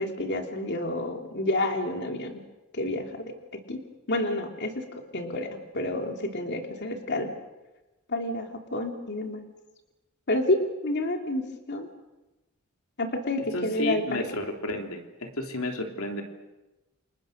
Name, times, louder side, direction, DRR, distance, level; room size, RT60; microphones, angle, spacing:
voice 1, 0.0-2.4 2.7-3.3 3.7-3.8 4.1-4.8 5.1-7.3 8.1-9.4 10.3-11.9 13.0-14.2, left 1 dB, 55° left, 3 dB, 2.9 m, -29 dB
voice 2, 13.5-16.2, left 1 dB, 75° left, 3 dB, 3.2 m, -32 dB
29.5 x 27.5 x 6.5 m, 1.1 s
head